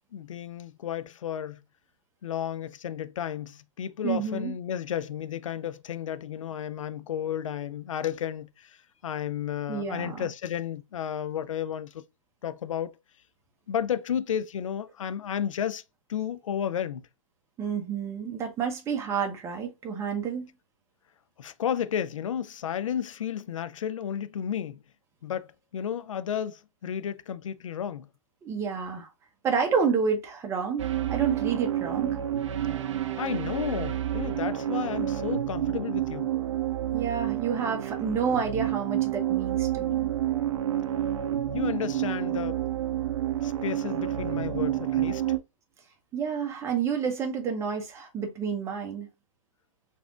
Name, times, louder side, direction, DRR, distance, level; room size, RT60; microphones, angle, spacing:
voice 1, 0.1-1.6 2.2-8.8 9.0-12.0 12.4-13.0 13.7-15.8 16.1-17.1 21.4-24.8 25.2-28.1 33.2-36.3 41.5-42.6 43.4-45.2, left 9 dB, 70° left, 0.4 m, -32 dB
voice 2, 4.0-4.5 9.7-10.3 17.6-20.5 28.4-29.1 29.4-32.2 36.9-40.1 46.1-49.1, right 6 dB, 15° right, 0.7 m, -29 dB
sound 1, 30.8-45.4, right 12 dB, 60° right, 0.5 m, -29 dB
3.3 x 2.5 x 2.3 m
hypercardioid pair, 125°, 17 cm